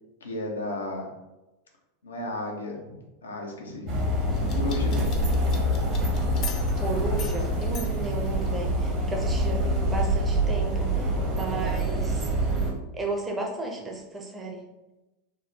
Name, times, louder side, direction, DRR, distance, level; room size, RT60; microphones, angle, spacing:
voice 1, 0.2-1.1 2.0-3.0 3.2-3.9 4.5-5.0, left 2 dB, 90° left, 0 dB, 0.6 m, -33 dB
sound 1, 3.9-12.7, right 1 dB, 50° right, 0.9 m, -26 dB
sound 2, 4.3-8.9, left 5 dB, 45° left, 0.6 m, -42 dB
voice 2, 6.8-10.9 11.3-12.2 12.9-14.6, right 2 dB, 20° right, 0 dB, 0.6 m, -33 dB
3.5 x 2.0 x 2.8 m, 1.0 s
hypercardioid pair, 95°, 0 cm